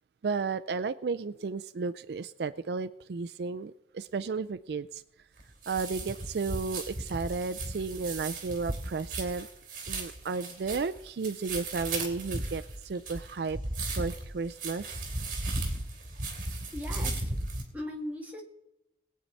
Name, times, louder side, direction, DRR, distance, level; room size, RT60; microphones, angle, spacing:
voice 1, 0.2-5.0 5.7-9.5 9.9-13.6 14.0-15.0, right 4 dB, 65° right, 13 dB, 0.4 m, -33 dB
sound 1, 5.4-17.6, right 2 dB, 50° right, 3.0 m, -36 dB
voice 2, 16.7-17.3 17.7-18.4, left 1 dB, 10° right, -1 dB, 2.2 m, -38 dB
21.0 x 8.7 x 4.1 m, 0.88 s
head